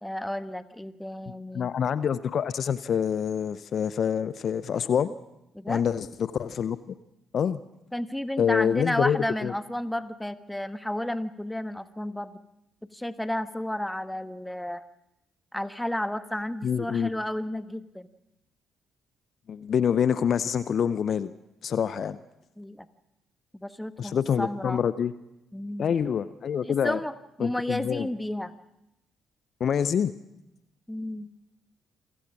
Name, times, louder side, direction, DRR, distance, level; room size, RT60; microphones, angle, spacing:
voice 1, 0.0-1.7 5.5-5.8 7.9-12.3 12.9-14.8 15.5-18.1 22.6-22.9 23.5-24.8 25.5-26.0 26.6-28.5 30.9-31.3, left 1 dB, 5° left, 12 dB, 1.3 m, -32 dB
voice 2, 1.5-5.1 5.7-6.8 7.3-7.6 8.4-9.5 16.6-17.1 19.5-21.3 21.6-22.2 24.0-25.1 25.8-27.0 27.4-28.1 29.6-30.1, left 8 dB, 55° left, 16 dB, 0.6 m, -26 dB
28.0 x 16.0 x 6.1 m, 0.89 s
hypercardioid pair, 45°, 0 cm